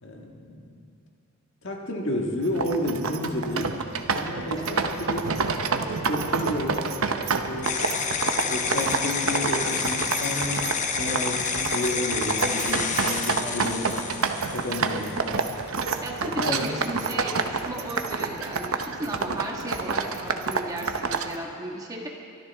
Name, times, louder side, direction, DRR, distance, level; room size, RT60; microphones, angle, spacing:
voice 1, 0.0-0.8 1.6-3.8 4.1-5.2 6.1-6.8 7.2-7.9 8.5-13.9 14.5-15.5 16.4-16.7, left 1 dB, 60° left, 1 dB, 1.6 m, -31 dB
sound 1, 2.4-21.4, right 4 dB, 85° right, 0.9 m, -29 dB
sound 2, 7.6-15.1, left 5 dB, 35° left, 0.9 m, -29 dB
voice 2, 16.0-22.1, right 1 dB, 20° right, -1 dB, 1.6 m, -35 dB
24.0 x 13.0 x 3.5 m, 2.4 s
head